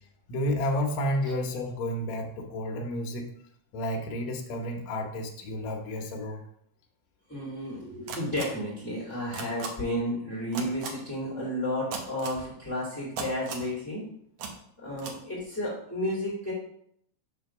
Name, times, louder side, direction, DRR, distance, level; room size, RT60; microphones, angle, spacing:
voice 1, 0.3-3.3 3.7-6.4, left 1 dB, 85° left, 2 dB, 1.5 m, -31 dB
voice 2, 7.3-14.0 14.8-16.5, left 1 dB, 5° left, -9 dB, 1.7 m, -32 dB
sound 1, 8.1-8.4 9.3-9.7 10.5-10.9 11.9-12.4 13.2-13.7 14.4-14.5 15.0-15.1, right 5 dB, 70° right, 1.7 m, -35 dB
6.2 x 3.7 x 5.9 m, 0.70 s
omnidirectional pair, 4.5 m